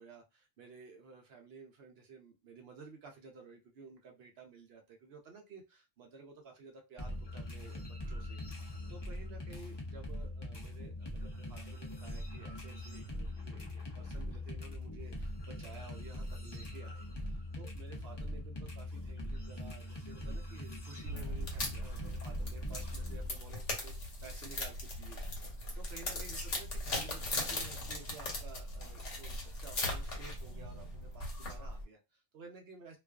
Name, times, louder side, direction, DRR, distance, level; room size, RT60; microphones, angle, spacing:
voice 1, 0.0-33.0, right 4 dB, 60° right, 2 dB, 0.8 m, -54 dB
sound 1, 7.0-23.3, left 1 dB, 35° left, 0.4 m, -42 dB
sound 2, 21.0-31.8, left 1 dB, 85° left, 1.2 m, -39 dB
2.5 x 2.3 x 2.2 m, 0.26 s
omnidirectional pair, 1.2 m